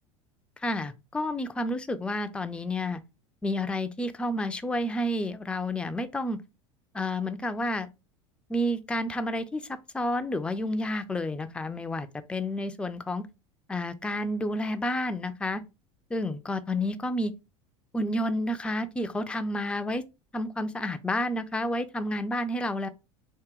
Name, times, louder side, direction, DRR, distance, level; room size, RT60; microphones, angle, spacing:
voice 1, 0.6-3.0 3.4-6.4 6.9-7.9 8.5-9.6 9.9-13.3 13.7-15.6 16.1-17.3 17.9-20.0 20.3-22.9, left 1 dB, 5° left, 0.5 m, -30 dB
3.6 x 2.9 x 4.5 m
figure-of-eight pair, 75°, 16 cm